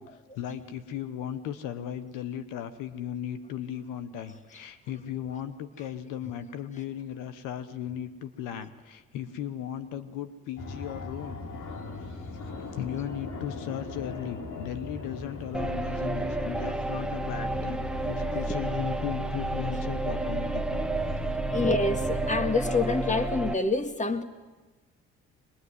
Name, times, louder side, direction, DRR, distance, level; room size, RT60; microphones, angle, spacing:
voice 1, 0.0-11.4 12.1-20.8, left 10 dB, 90° left, 12 dB, 1.1 m, -37 dB
Fixed-wing aircraft airplane, 10.6-22.5, left 2 dB, 70° left, 3.4 m, -39 dB
sound 1, 15.5-23.5, right 2 dB, 5° right, 1.1 m, -30 dB
voice 2, 21.5-24.2, left 3 dB, 25° left, 8 dB, 2.0 m, -27 dB
23.0 x 21.0 x 9.7 m, 1.3 s
supercardioid pair, 65°, 31 cm